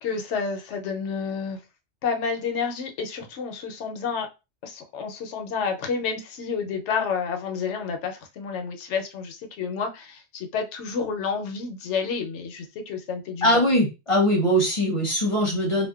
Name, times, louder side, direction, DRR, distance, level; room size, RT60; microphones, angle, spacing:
voice 1, 0.0-1.6 2.0-4.3 4.6-13.6, left 5 dB, 75° left, 0.9 m, -30 dB
voice 2, 13.4-15.9, equal, 35° left, 0.7 m, -21 dB
2.7 x 2.1 x 2.3 m
omnidirectional pair, 1.2 m